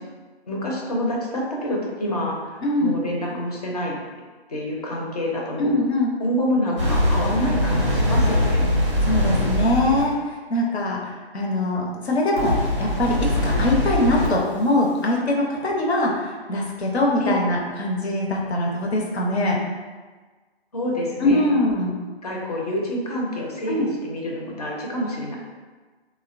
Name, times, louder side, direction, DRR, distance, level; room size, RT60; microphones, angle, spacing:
voice 1, 0.5-4.0 4.5-5.7 6.2-8.7 17.2-17.4 20.7-21.5 22.2-25.4, equal, 35° left, -3 dB, 0.5 m, -27 dB
voice 2, 2.6-3.0 5.6-6.1 9.0-11.0 11.3-19.6 21.2-21.9 23.7-23.9, left 1 dB, 75° left, -2 dB, 0.7 m, -22 dB
sound 1, 6.8-10.1 12.4-14.4, left 1 dB, 30° right, 0.4 m, -22 dB
3.2 x 2.1 x 2.4 m, 1.4 s
hypercardioid pair, 160°, 32 cm